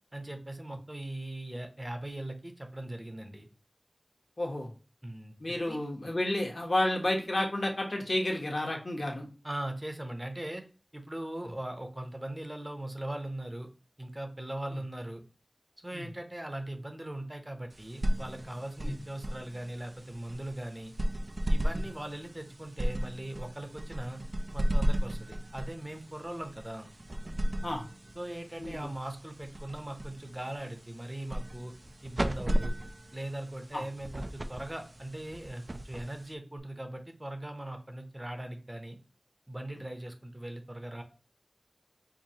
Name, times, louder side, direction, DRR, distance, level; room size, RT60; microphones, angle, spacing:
voice 1, 0.1-3.5 5.0-5.8 9.4-10.6 10.9-13.7 14.0-15.2 15.8-20.9 21.5-24.2 24.5-26.9 28.1-31.7 32.0-32.8 33.1-39.0 39.5-41.0, right 1 dB, 25° right, 6 dB, 0.8 m, -40 dB
voice 2, 4.4-4.7 5.4-9.2 15.9-16.1 18.8-18.9 21.7-21.8 27.6-27.8 28.6-28.9 33.7-33.8, left 1 dB, 60° left, 0 dB, 1.1 m, -31 dB
sound 1, 17.7-36.6, equal, 50° right, 0.4 m, -35 dB
4.7 x 2.3 x 2.8 m, 0.33 s
wide cardioid pair, 40°, 0 cm